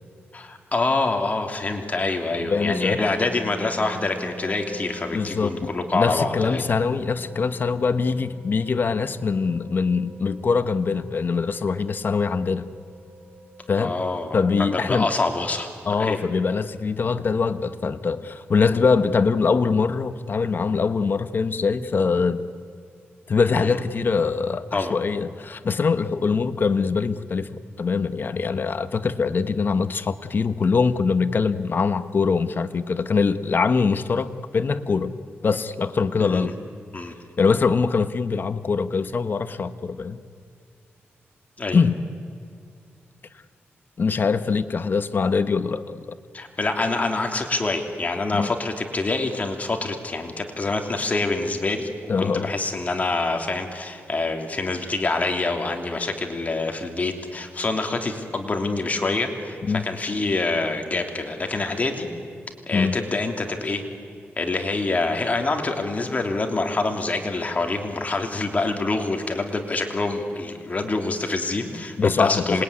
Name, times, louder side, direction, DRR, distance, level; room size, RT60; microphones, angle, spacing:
voice 1, 0.3-6.6 13.8-15.7 16.0-16.3 23.6-23.8 24.7-24.9 36.2-36.5 36.9-37.1 41.6-41.8 46.3-51.9 52.2-62.1 62.7-63.8 64.4-72.6, left 3 dB, 35° left, 4 dB, 3.0 m, -26 dB
sound 1, 2.4-14.5, equal, 45° right, 3.5 m, -42 dB
voice 2, 2.5-3.0 5.1-12.7 13.7-13.9 14.3-15.1 15.9-22.5 23.3-35.1 35.4-36.5 37.4-40.2 41.7-42.0 44.0-46.0 48.3-48.5 52.1-52.5 59.6-59.8 62.7-63.0 72.0-72.6, left 5 dB, 50° left, 11 dB, 1.1 m, -23 dB
26.5 x 21.5 x 9.8 m, 2.4 s
wide cardioid pair, 105°, 4 cm